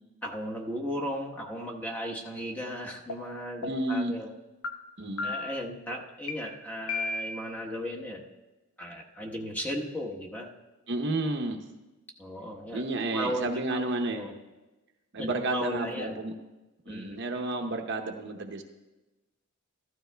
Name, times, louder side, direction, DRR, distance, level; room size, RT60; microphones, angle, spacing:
voice 1, 0.2-4.3 5.2-8.2 8.8-10.5 12.2-12.8 13.1-14.4 15.2-16.2 16.9-17.2, equal, 10° left, -1 dB, 1.1 m, -36 dB
sound 1, 3.1-3.2 3.6-4.0 4.6-4.7 5.2-5.6 6.3-6.4 6.9-7.5, left 3 dB, 80° left, 1.1 m, -33 dB
voice 2, 3.7-4.2 5.0-5.3 10.9-11.6 12.7-14.3 15.1-16.3 16.9-18.6, right 2 dB, 55° right, 4 dB, 0.9 m, -31 dB
15.0 x 12.5 x 2.2 m, 1.1 s
head